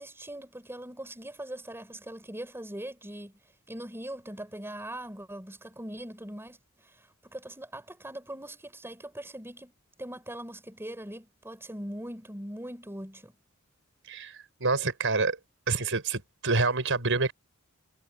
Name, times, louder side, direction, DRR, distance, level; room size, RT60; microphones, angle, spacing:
voice 1, 0.0-3.3 3.7-6.6 6.8-9.7 10.0-13.4, right 1 dB, 10° right, 5.1 m, -41 dB
voice 2, 14.1-15.4 15.7-17.3, right 3 dB, 65° right, 5.4 m, -27 dB
head